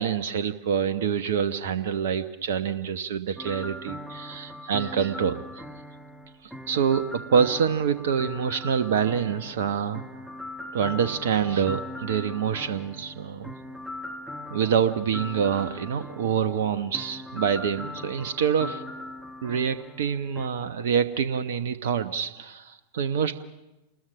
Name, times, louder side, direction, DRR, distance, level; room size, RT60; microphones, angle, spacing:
voice 1, 0.0-5.6 6.4-10.2 10.7-13.5 14.5-18.8 19.4-23.4, right 7 dB, 60° right, 11 dB, 1.1 m, -26 dB
sound 1, 3.4-20.5, left 1 dB, ahead, 1.4 m, -40 dB
28.0 x 20.5 x 6.3 m, 1.0 s
figure-of-eight pair, 90°, 0 cm